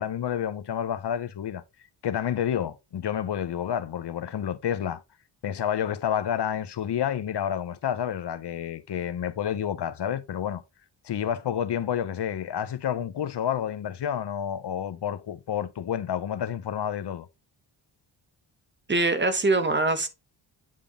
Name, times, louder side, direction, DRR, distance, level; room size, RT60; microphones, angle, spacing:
voice 1, 0.0-1.6 2.0-5.0 5.4-10.6 11.0-17.3, left 9 dB, 60° left, 0.8 m, -29 dB
voice 2, 18.9-20.1, right 2 dB, 25° right, 1.2 m, -23 dB
8.8 x 3.6 x 3.7 m
wide cardioid pair, 110°, 47 cm